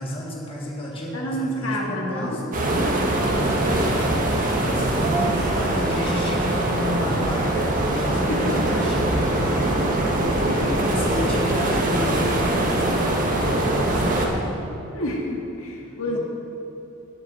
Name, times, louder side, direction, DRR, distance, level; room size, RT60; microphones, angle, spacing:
voice 1, 0.0-2.7 3.3-9.6 10.7-14.6 16.1-16.2, equal, 25° left, -3 dB, 1.8 m, -32 dB
voice 2, 1.1-2.4 8.3-8.4 9.8-10.1 10.4-10.9 14.9-16.2, equal, 70° left, -2 dB, 1.9 m, -29 dB
sound 1, 2.5-14.3, right 1 dB, 40° right, 1.6 m, -22 dB
11.5 x 7.3 x 7.4 m, 3.0 s
head